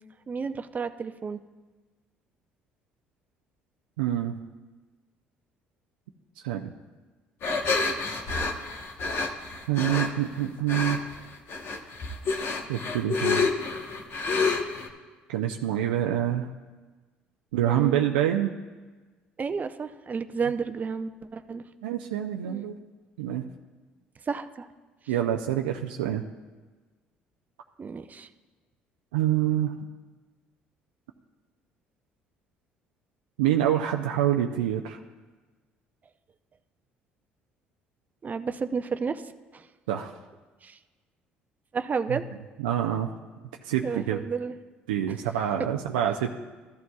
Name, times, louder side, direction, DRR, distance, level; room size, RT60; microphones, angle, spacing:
voice 1, 0.3-1.4 17.6-18.1 19.4-21.6 22.4-22.6 24.3-24.7 27.8-28.3 38.2-39.2 39.5-39.6 40.6-40.8 41.7-42.2 43.8-44.6 45.6-45.7, right 5 dB, 35° right, 10 dB, 0.6 m, -31 dB
voice 2, 4.0-4.4 6.4-6.7 9.7-11.0 12.7-13.5 15.3-16.5 17.5-18.5 21.8-22.7 23.2-23.4 25.1-26.2 29.1-29.7 33.4-35.0 39.9-40.2 42.1-42.2 42.6-43.1 43.6-44.2 44.9-46.3, right 11 dB, 85° right, 2 dB, 0.4 m, -26 dB
sound 1, 7.4-10.1 10.7-11.2 11.5-14.9, left 4 dB, 55° left, 1.1 m, -28 dB
14.0 x 11.0 x 2.3 m, 1.3 s
hypercardioid pair, 60°, 5 cm